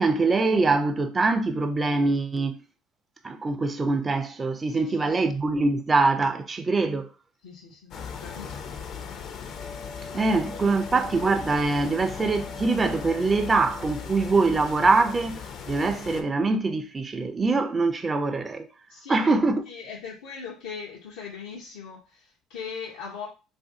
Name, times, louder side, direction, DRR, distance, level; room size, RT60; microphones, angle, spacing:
voice 1, 0.0-2.6 3.2-7.1 10.1-18.7 19.1-19.6, right 3 dB, 25° right, 0.4 m, -23 dB
voice 2, 7.4-8.8 10.1-10.6 18.9-19.4 19.7-23.3, left 6 dB, 90° left, 0.7 m, -40 dB
sound 1, 7.9-16.2, left 6 dB, 55° left, 0.5 m, -38 dB
2.6 x 2.5 x 3.6 m
supercardioid pair, 95°, 0 cm